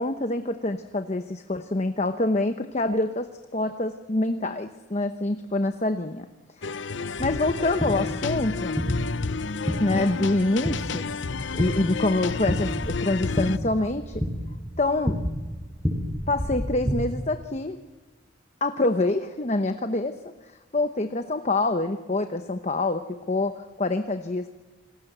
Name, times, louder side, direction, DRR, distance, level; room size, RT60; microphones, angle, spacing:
voice 1, 0.0-3.3 3.5-6.3 6.6-6.7 7.2-8.8 9.8-11.1 11.5-14.2 14.8-15.2 16.3-17.8 18.6-20.2 20.7-24.5, left 2 dB, 35° left, 7 dB, 0.9 m, -26 dB
sound 1, 6.6-13.6, left 4 dB, 70° left, 0.7 m, -31 dB
sound 2, 7.2-17.0, equal, 15° right, 7.3 m, -31 dB
28.5 x 20.0 x 8.0 m, 1.3 s
head